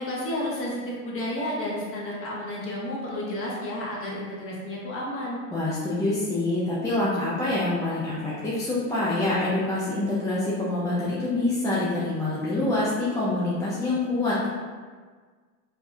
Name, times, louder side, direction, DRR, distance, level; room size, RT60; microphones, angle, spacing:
voice 1, 0.0-5.4, left 1 dB, 30° left, -4 dB, 1.1 m, -31 dB
voice 2, 5.5-14.5, left 2 dB, 5° left, -9 dB, 0.5 m, -26 dB
5.1 x 2.3 x 2.7 m, 1.5 s
supercardioid pair, 115°, 45 cm